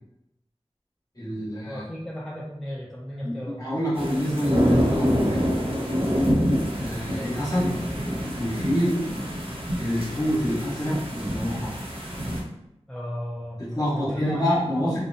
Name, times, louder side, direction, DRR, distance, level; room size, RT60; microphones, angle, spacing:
voice 1, 1.1-1.8 3.2-5.7 6.8-7.8 8.4-9.1 9.8-11.7 13.6-15.0, equal, 40° left, -8 dB, 1.1 m, -27 dB
voice 2, 1.7-3.6 12.9-13.6 13.9-14.4, equal, 5° left, -6 dB, 0.5 m, -35 dB
sound 1, 4.0-12.4, equal, 60° right, 0.7 m, -26 dB
2.8 x 2.1 x 2.5 m, 0.84 s
wide cardioid pair, 55°, 11 cm